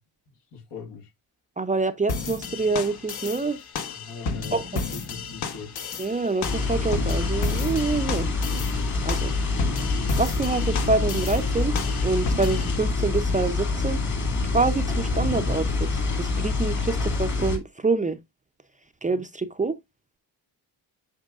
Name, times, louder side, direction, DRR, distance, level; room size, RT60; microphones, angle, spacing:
voice 1, 0.5-1.1 3.9-5.8, left 5 dB, 75° left, 1.7 m, -40 dB
voice 2, 1.6-3.6 4.5-4.8 6.0-8.3 9.0-9.3 10.2-11.7 12.0-14.0 14.5-18.2 19.0-19.8, right 3 dB, 20° right, 0.5 m, -26 dB
sound 1, 2.1-12.8, left 4 dB, 60° left, 1.1 m, -33 dB
sound 2, 6.4-17.6, left 3 dB, 40° left, 2.1 m, -26 dB
8.2 x 5.9 x 2.4 m
wide cardioid pair, 135°, 43 cm